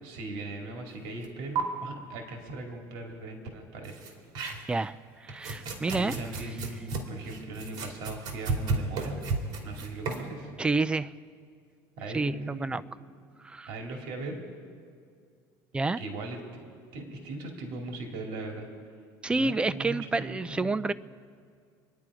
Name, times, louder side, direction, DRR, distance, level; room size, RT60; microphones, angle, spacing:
voice 1, 0.0-4.0 5.5-9.2 9.6-10.5 12.0-12.9 13.7-14.4 16.0-16.6 16.9-18.7 19.3-20.8, right 2 dB, 70° right, 2 dB, 2.4 m, -39 dB
sound 1, 1.2-1.3 1.6-1.7 3.8-4.9 5.3-10.3, right 4 dB, 55° right, 2.6 m, -33 dB
voice 2, 5.2-6.1 10.6-11.1 12.1-12.8 13.4-13.7 15.7-16.0 19.2-20.9, right 3 dB, 10° right, 13 dB, 0.4 m, -28 dB
27.0 x 10.5 x 4.9 m, 2.2 s
cardioid pair, 140°, 9 cm